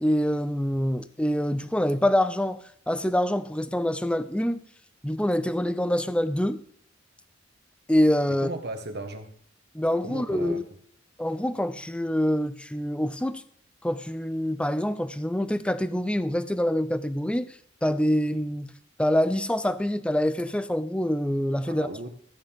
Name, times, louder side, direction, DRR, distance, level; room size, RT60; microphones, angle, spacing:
voice 1, 0.0-4.6 5.0-6.6 7.9-8.5 9.7-10.6 11.2-13.4 13.8-17.5 17.8-18.7 19.0-21.9, equal, 5° left, 0.5 m, -25 dB
voice 2, 8.3-9.3 10.0-10.6 21.7-22.1, right 2 dB, 55° right, 1.6 m, -36 dB
14.0 x 9.6 x 3.6 m
head